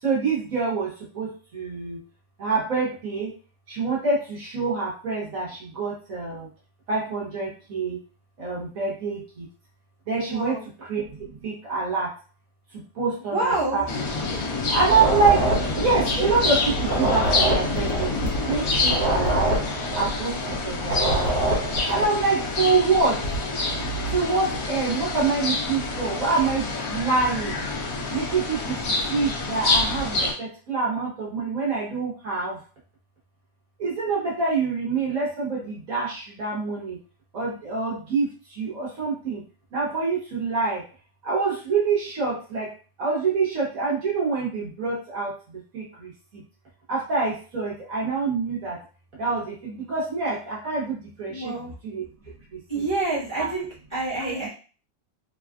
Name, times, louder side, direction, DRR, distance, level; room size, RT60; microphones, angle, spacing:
voice 1, 0.0-2.0 2.4-3.3 3.7-6.5 6.9-8.0 8.4-9.5 10.1-12.1 12.9-13.8 14.2-14.4 14.7-19.5 19.9-20.4 20.6-21.2 21.9-23.2 24.1-27.6 28.1-32.6 33.8-37.0 37.3-39.4 39.7-40.9 41.2-42.7 43.0-45.4 45.7-46.1 46.9-48.8 49.2-51.6 51.8-52.0 52.5-52.6 54.4-54.5, right 4 dB, 55° right, -5 dB, 1.2 m, -26 dB
voice 2, 10.3-10.6 13.3-13.8 14.3-14.4 51.3-51.7 52.7-53.6 53.9-54.5, right 2 dB, 20° left, -9 dB, 0.8 m, -27 dB
sound 1, 13.9-30.3, left 2 dB, 60° left, 1.0 m, -27 dB
sound 2, 14.8-16.5 16.8-20.5 20.8-22.2, right 2 dB, 75° right, 1.3 m, -26 dB
3.4 x 2.3 x 2.3 m, 0.38 s
omnidirectional pair, 2.0 m